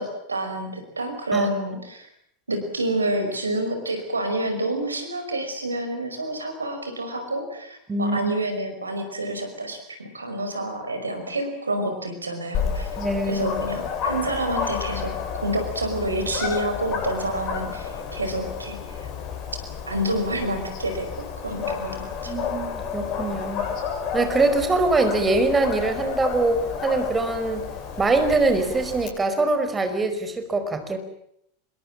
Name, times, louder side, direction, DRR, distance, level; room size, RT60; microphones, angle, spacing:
voice 1, 0.0-2.1 2.5-13.0 13.3-19.1 19.9-22.3, right 1 dB, 80° right, 7 dB, 5.5 m, -28 dB
voice 2, 7.9-8.3 13.0-13.5 22.3-23.6 24.1-27.6 28.0-31.0, right 2 dB, 15° right, 8 dB, 5.2 m, -23 dB
Dog, 12.5-29.1, left 6 dB, 40° left, 7.7 m, -31 dB
27.5 x 23.0 x 7.5 m, 0.73 s
figure-of-eight pair, 85°, 0 cm